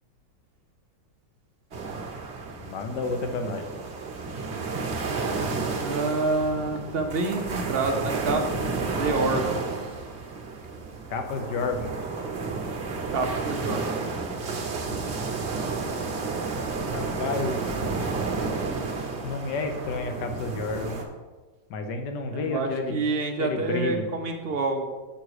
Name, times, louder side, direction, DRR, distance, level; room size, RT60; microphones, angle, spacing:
sound 1, 1.7-21.0, right 4 dB, 45° right, 1.0 m, -31 dB
voice 1, 2.6-3.7 11.1-11.9 16.9-17.5 19.2-21.0 21.7-23.0 23.4-24.0, left 4 dB, 70° left, 6 dB, 1.4 m, -30 dB
voice 2, 5.8-8.4 8.9-9.4 13.1-13.8 22.3-24.9, right 3 dB, 65° right, 4 dB, 0.5 m, -27 dB
6.6 x 6.0 x 4.8 m, 1.3 s
omnidirectional pair, 2.0 m